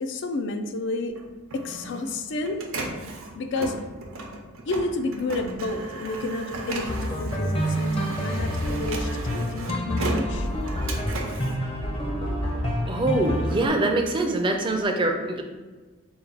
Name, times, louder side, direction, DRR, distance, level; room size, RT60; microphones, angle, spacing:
voice 1, 0.0-1.1 1.5-2.6 3.4-3.7 4.7-10.5, left 2 dB, 60° left, 6 dB, 0.4 m, -30 dB
Printer, 1.1-12.5 13.0-14.8, right 2 dB, 85° right, 0.6 m, -37 dB
sound 1, 6.9-13.7, equal, 30° left, 0.6 m, -28 dB
voice 2, 12.9-15.4, right 2 dB, 25° right, 3 dB, 0.4 m, -24 dB
4.2 x 2.2 x 3.9 m, 1.3 s
head